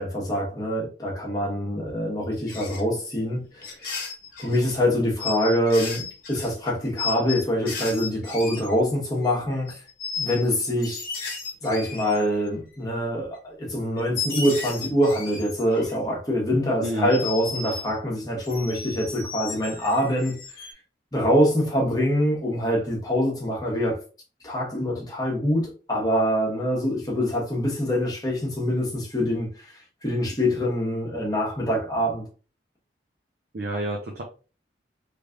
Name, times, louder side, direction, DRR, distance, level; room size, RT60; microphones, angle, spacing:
voice 1, 0.0-3.7 4.4-9.8 10.2-11.1 11.6-20.6 21.1-24.0 24.4-32.2, equal, 20° left, 1.2 m, -25 dB
sound 1, 2.5-2.8 3.6-4.8 5.2-8.9 9.2-9.4 9.7-10.5 10.8-12.6 13.3-13.4 14.0-16.0 17.1-18.0 18.4-20.7, left 5 dB, 50° left, 1.0 m, -34 dB
voice 2, 16.8-17.1 33.5-34.2, right 1 dB, 55° right, 0.6 m, -29 dB
3.3 x 3.2 x 2.4 m
head